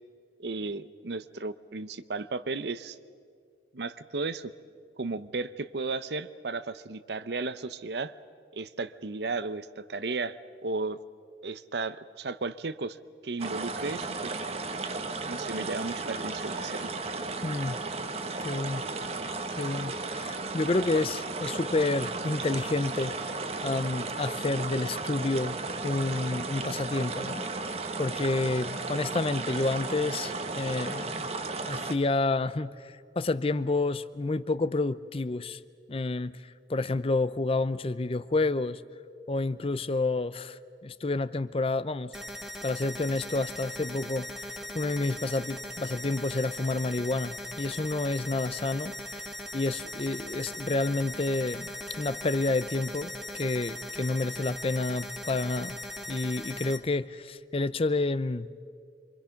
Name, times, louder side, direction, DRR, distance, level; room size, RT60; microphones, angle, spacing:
voice 1, 0.4-3.0 3.7-4.5 5.0-8.1 8.5-10.4 10.6-11.0 11.4-13.0 13.2-14.4 15.3-16.9, right 3 dB, 65° right, 14 dB, 0.7 m, -34 dB
sound 1, 13.4-31.9, right 3 dB, 35° right, 1.0 m, -34 dB
voice 2, 17.4-17.8 18.4-18.8 19.6-23.1 23.6-25.6 25.8-27.7 28.0-31.3 31.7-35.6 35.9-36.4 36.7-38.8 39.3-42.1 42.6-49.2 49.5-51.7 52.0-55.8 56.1-58.5, left 2 dB, 30° left, 15 dB, 0.5 m, -29 dB
sound 2, 42.1-56.8, left 1 dB, ahead, 1.4 m, -39 dB
27.5 x 24.5 x 5.8 m, 2.2 s
head